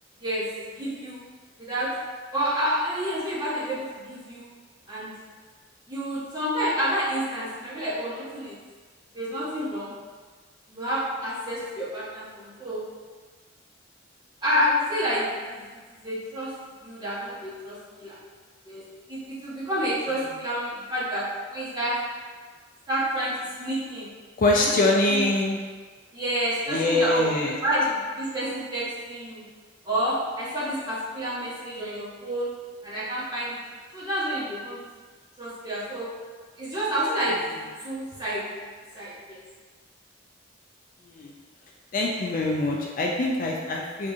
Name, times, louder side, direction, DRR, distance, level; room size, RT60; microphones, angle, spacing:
voice 1, 0.2-1.2 1.6-2.0 2.3-4.5 4.9-5.2 5.9-8.6 9.1-9.9 10.7-12.8 14.4-16.6 16.8-18.2 18.6-22.1 22.9-24.1 24.6-25.3 26.1-27.3 27.6-29.4 29.8-33.6 33.9-34.8 35.4-36.1 36.6-38.6 38.9-39.4, equal, 20° right, -11 dB, 1.2 m, -29 dB
voice 2, 24.4-25.6 26.7-27.6 41.1-41.3 41.9-44.1, left 2 dB, 45° left, -1 dB, 0.3 m, -24 dB
4.8 x 2.7 x 2.4 m, 1.5 s
head